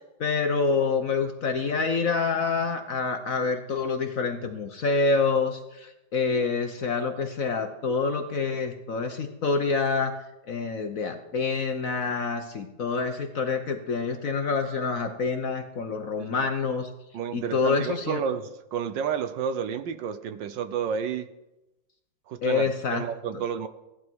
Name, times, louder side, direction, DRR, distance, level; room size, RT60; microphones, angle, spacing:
voice 1, 0.2-10.1 10.5-16.9 17.3-18.2 22.4-23.0 23.3-23.4, left 4 dB, 50° left, 6 dB, 1.1 m, -27 dB
voice 2, 17.1-21.3 22.3-22.6 22.9-23.7, right 7 dB, 70° right, 11 dB, 1.3 m, -30 dB
17.0 x 11.5 x 4.6 m, 0.96 s
omnidirectional pair, 2.2 m